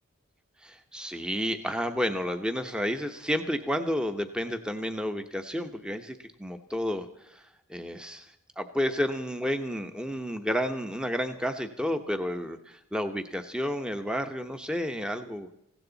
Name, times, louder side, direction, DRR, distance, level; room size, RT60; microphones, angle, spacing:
voice 1, 0.6-8.3 8.6-15.5, equal, 5° right, 7 dB, 1.0 m, -31 dB
20.0 x 16.5 x 4.0 m, 0.77 s
head